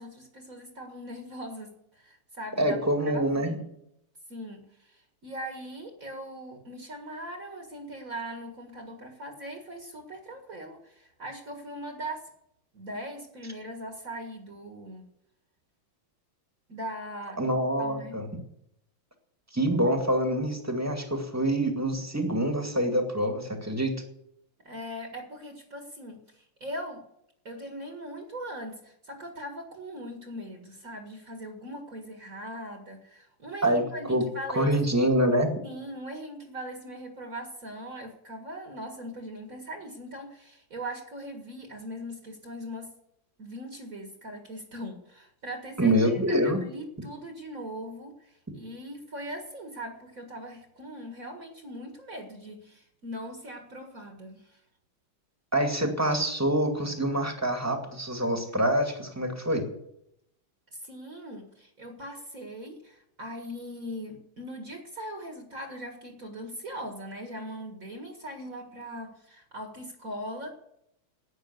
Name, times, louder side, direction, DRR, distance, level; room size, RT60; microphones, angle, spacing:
voice 1, 0.0-3.7 4.3-12.2 12.7-15.0 16.7-18.2 24.6-27.0 27.4-34.7 35.6-42.9 43.4-54.6 60.7-70.5, equal, 40° right, 3 dB, 2.1 m, -40 dB
voice 2, 2.6-3.6 17.4-18.2 19.5-24.0 33.6-34.2 34.5-35.5 45.8-46.6 55.5-59.7, right 1 dB, 10° right, 4 dB, 1.9 m, -26 dB
11.5 x 9.2 x 8.2 m, 0.76 s
omnidirectional pair, 2.3 m